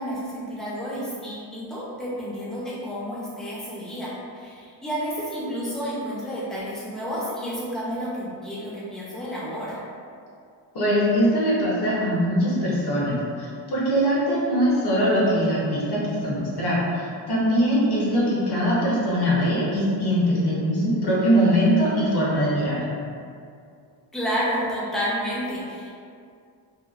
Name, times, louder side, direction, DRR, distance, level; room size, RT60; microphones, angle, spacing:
voice 1, 0.0-9.8 17.9-18.3 24.1-25.9, equal, ahead, -7 dB, 0.5 m, -30 dB
voice 2, 10.7-22.8, equal, 60° left, -7 dB, 0.9 m, -22 dB
2.9 x 2.1 x 2.4 m, 2.4 s
wide cardioid pair, 130°, 45 cm